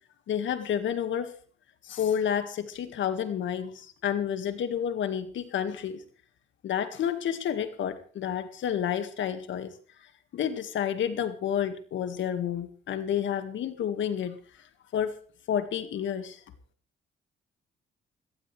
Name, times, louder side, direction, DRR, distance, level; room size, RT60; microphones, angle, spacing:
voice 1, 0.3-1.3 1.8-6.0 6.6-9.7 10.3-15.2 15.5-16.4, left 9 dB, 70° left, 9 dB, 2.0 m, -30 dB
19.5 x 17.5 x 3.4 m, 0.41 s
cardioid pair, 90°, 20 cm